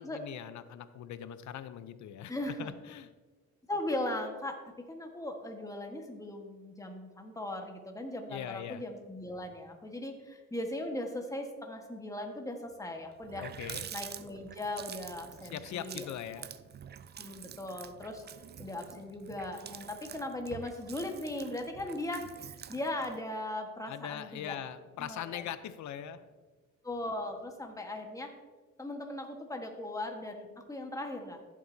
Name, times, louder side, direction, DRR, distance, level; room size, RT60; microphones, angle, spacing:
voice 1, 0.0-2.3 2.6-3.1 8.3-8.8 13.4-13.9 15.5-16.5 23.9-26.3, left 10 dB, 70° left, 13 dB, 0.7 m, -41 dB
voice 2, 2.3-2.7 3.7-13.5 13.9-16.1 16.4-16.5 17.2-18.2 18.6-24.6 25.0-25.5 26.8-28.3 28.8-31.4, left 1 dB, 10° left, 3 dB, 1.4 m, -38 dB
Water tap faucet, 12.8-12.9 13.1-23.2, right 8 dB, 35° right, 0.4 m, -47 dB
14.5 x 7.5 x 2.7 m, 1.4 s
cardioid pair, 90°, 30 cm